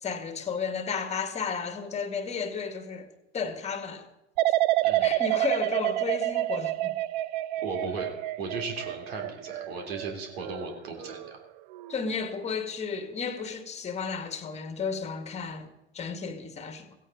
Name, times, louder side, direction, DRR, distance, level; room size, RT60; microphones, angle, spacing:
voice 1, 0.0-3.1 3.3-4.1 5.0-7.0 11.9-15.7 15.9-16.9, left 5 dB, 20° left, 2.1 m, -33 dB
sound 1, 4.4-11.3 11.7-12.2, right 16 dB, 45° right, 0.6 m, -28 dB
voice 2, 7.6-8.1 8.4-11.4, right 4 dB, 60° right, 3.6 m, -36 dB
16.5 x 16.5 x 4.0 m
figure-of-eight pair, 85°, 34 cm